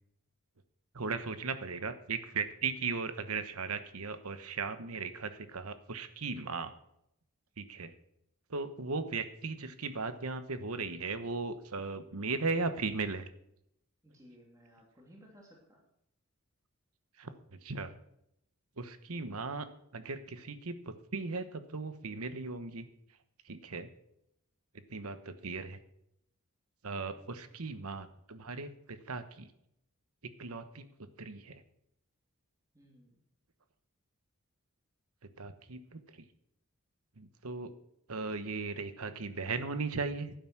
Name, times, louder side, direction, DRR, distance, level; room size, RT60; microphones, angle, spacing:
voice 1, 0.9-6.7 7.6-7.9 8.5-13.3 17.2-17.3 17.6-17.9 18.8-19.7 19.9-22.8 23.4-23.9 24.9-25.8 26.8-29.5 30.4-30.9 31.2-31.6 35.4-36.2 37.2-37.7 38.1-40.3, right 4 dB, 80° right, 11 dB, 1.1 m, -37 dB
voice 2, 14.0-15.8 27.2-27.8 32.7-33.2, equal, 15° right, -1 dB, 2.7 m, -59 dB
11.5 x 9.3 x 6.1 m, 0.77 s
head